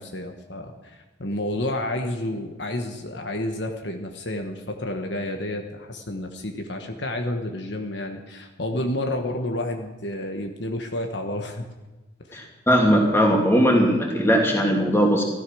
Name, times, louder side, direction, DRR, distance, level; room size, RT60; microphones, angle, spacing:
voice 1, 0.0-11.6 12.3-12.4, left 1 dB, 60° left, 4 dB, 1.4 m, -30 dB
voice 2, 12.3-15.2, equal, 10° left, 0 dB, 3.0 m, -19 dB
15.5 x 13.5 x 6.2 m, 1.2 s
head